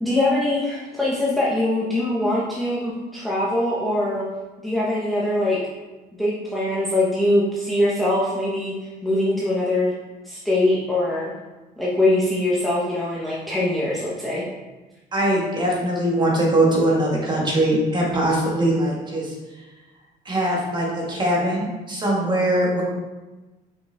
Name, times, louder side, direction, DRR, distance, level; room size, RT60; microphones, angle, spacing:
voice 1, 0.0-4.2 4.6-5.6 6.2-8.7 9.0-9.9 10.3-11.3 11.8-14.4, left 1 dB, ahead, -7 dB, 1.1 m, -22 dB
voice 2, 15.1-19.3 20.3-22.8, right 1 dB, 25° right, -3 dB, 1.9 m, -21 dB
5.6 x 5.6 x 3.5 m, 1.2 s
cardioid pair, 110°, 17 cm